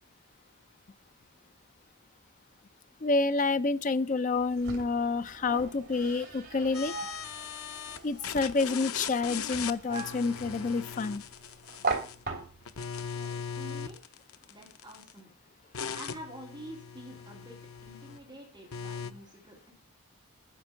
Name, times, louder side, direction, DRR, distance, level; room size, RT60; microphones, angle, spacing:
voice 1, 3.0-6.9 8.0-11.2, left 3 dB, 35° left, 0.4 m, -28 dB
sound 1, 4.3-12.8, right 3 dB, 45° right, 3.0 m, -40 dB
sound 2, 6.7-8.0 8.2-12.2 12.6-15.1 15.7-18.2 18.7-19.1, left 7 dB, 85° left, 0.7 m, -39 dB
voice 2, 13.1-14.2 14.5-15.3 15.9-17.6 17.8-19.7, right 1 dB, 20° right, 2.9 m, -47 dB
9.8 x 5.9 x 6.9 m
head